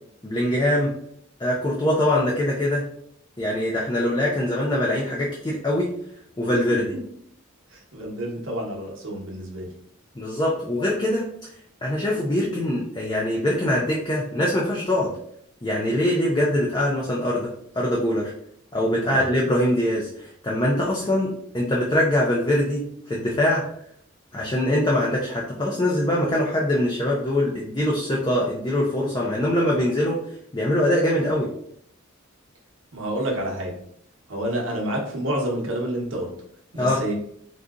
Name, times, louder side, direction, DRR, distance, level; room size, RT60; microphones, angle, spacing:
voice 1, 0.2-0.9 1.4-2.8 3.4-5.9 6.4-6.8 10.2-11.2 11.8-15.1 15.6-18.3 18.7-23.7 24.3-30.2 30.5-31.5 36.8-37.0, left 1 dB, 20° left, -3 dB, 0.4 m, -23 dB
voice 2, 7.7-9.7 19.0-19.3 32.9-33.8 34.3-36.3 36.7-37.1, right 1 dB, 60° right, -2 dB, 0.9 m, -29 dB
3.8 x 2.8 x 2.4 m, 0.68 s
head